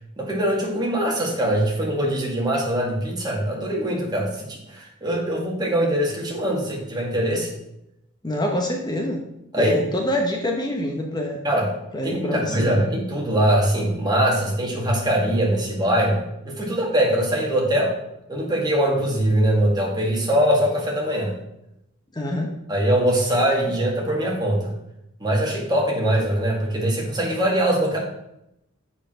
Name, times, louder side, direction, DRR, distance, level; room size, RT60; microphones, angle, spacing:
voice 1, 0.2-7.5 9.5-9.8 11.4-11.7 12.0-16.2 16.5-17.9 18.3-21.3 22.7-24.7 25.2-28.0, right 1 dB, 20° right, -2 dB, 1.8 m, -22 dB
voice 2, 8.2-9.2 9.6-11.4 11.9-12.8 22.1-22.5, left 1 dB, 20° left, 2 dB, 0.8 m, -25 dB
7.0 x 4.8 x 6.2 m, 0.84 s
head